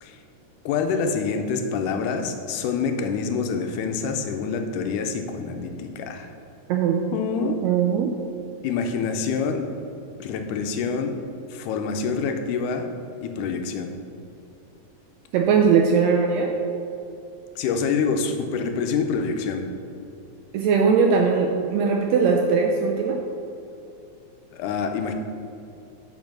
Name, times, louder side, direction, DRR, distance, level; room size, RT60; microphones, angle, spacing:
voice 1, 0.7-6.3 7.1-7.6 8.6-9.7 10.2-11.2 11.5-12.9 13.2-13.9 17.6-19.7 24.5-25.1, left 5 dB, 90° left, 5 dB, 2.2 m, -26 dB
voice 2, 6.7-7.0 7.6-8.1 15.3-16.5 20.5-23.2, right 5 dB, 80° right, 1 dB, 1.5 m, -20 dB
7.3 x 5.1 x 6.1 m, 2.7 s
omnidirectional pair, 3.5 m